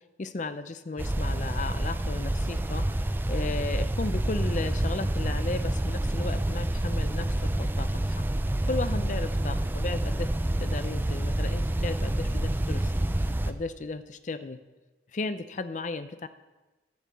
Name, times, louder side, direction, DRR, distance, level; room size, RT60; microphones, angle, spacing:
voice 1, 0.2-2.9 3.3-8.2 8.7-10.3 10.6-14.6 15.1-16.3, left 3 dB, 45° left, 12 dB, 0.5 m, -35 dB
sound 1, 1.0-13.5, right 1 dB, 10° right, 0.4 m, -28 dB
10.5 x 5.6 x 7.3 m, 1.1 s
head